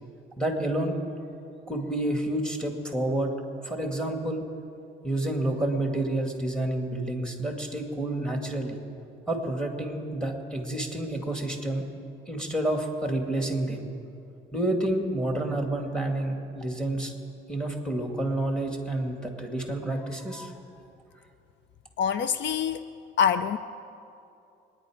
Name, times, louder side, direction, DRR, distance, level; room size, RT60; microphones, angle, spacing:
voice 1, 0.4-1.0 1.7-3.3 3.6-4.4 5.0-8.8 9.3-11.8 12.3-13.9 14.5-17.1 17.5-20.6, right 1 dB, 5° left, 2 dB, 2.4 m, -29 dB
voice 2, 22.0-22.9 23.2-23.6, left 7 dB, 65° left, 12 dB, 0.5 m, -25 dB
25.0 x 10.5 x 5.1 m, 2.6 s
cardioid pair, 90°, 20 cm